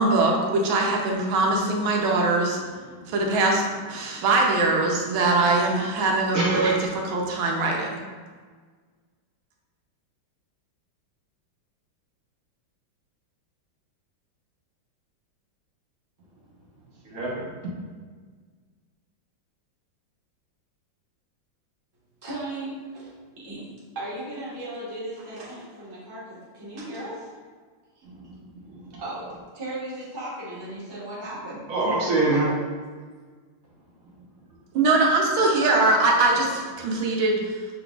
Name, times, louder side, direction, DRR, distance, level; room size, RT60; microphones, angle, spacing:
voice 1, 0.0-2.6 3.1-6.8 7.1-8.0 34.7-37.6, right 2 dB, 80° right, 0 dB, 1.5 m, -22 dB
voice 2, 6.3-6.8 17.0-17.5 28.0-29.0 31.7-32.5 36.9-37.0, right 2 dB, 55° right, -4 dB, 1.1 m, -26 dB
voice 3, 22.2-23.1 23.4-23.6 23.9-27.3 29.0-29.3 29.5-31.6 32.0-32.1 34.9-36.0, right 1 dB, 15° right, -8 dB, 1.0 m, -36 dB
5.9 x 3.8 x 2.3 m, 1.5 s
omnidirectional pair, 2.2 m